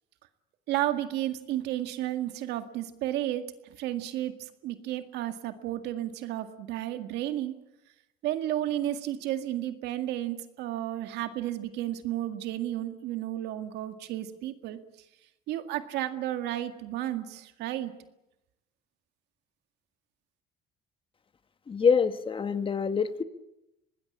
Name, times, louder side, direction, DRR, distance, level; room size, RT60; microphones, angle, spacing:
voice 1, 0.7-3.5 3.8-7.6 8.2-14.8 15.5-17.9, right 13 dB, 90° right, 8 dB, 2.0 m, -32 dB
voice 2, 21.7-23.2, left 6 dB, 30° left, 10 dB, 1.6 m, -25 dB
24.5 x 20.0 x 8.7 m, 0.90 s
cardioid pair, 110°, 17 cm